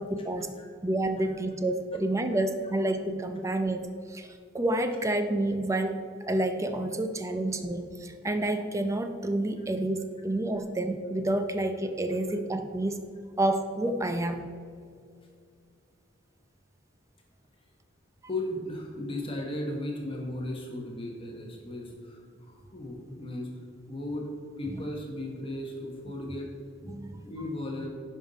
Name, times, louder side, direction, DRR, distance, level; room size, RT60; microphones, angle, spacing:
voice 1, 0.0-0.5 0.8-3.8 4.1-6.0 6.3-13.0 13.4-14.4 26.9-27.1, right 1 dB, 15° right, 7 dB, 0.6 m, -29 dB
voice 2, 18.2-24.3 24.6-26.5 27.2-27.9, left 1 dB, 30° left, 0 dB, 1.1 m, -36 dB
10.5 x 5.5 x 4.0 m, 2.2 s
head